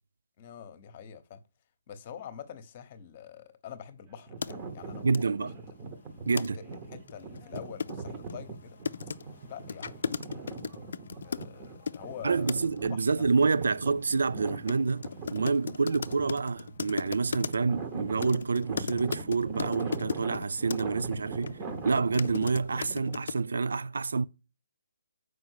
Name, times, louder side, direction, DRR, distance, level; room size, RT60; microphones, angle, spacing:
voice 1, 0.4-1.4 1.9-5.5 6.3-8.8 9.5-10.4 11.2-12.6 12.9-13.2, left 8 dB, 35° left, 1.0 m, -46 dB
sound 1, 4.1-23.1, right 3 dB, 20° right, 1.0 m, -41 dB
sound 2, 4.4-4.5 5.1-5.2 6.4-6.5 6.7-6.8 7.1-12.0 12.5-12.8 14.7-14.8 15.0-17.8 18.2-20.8 21.4-21.5 21.9-23.4, left 6 dB, 65° left, 0.5 m, -36 dB
voice 2, 5.0-5.5 6.3-6.6 12.2-21.6 21.8-24.2, right 4 dB, 75° right, 0.4 m, -28 dB
7.0 x 4.9 x 6.4 m
hypercardioid pair, 160°, 0 cm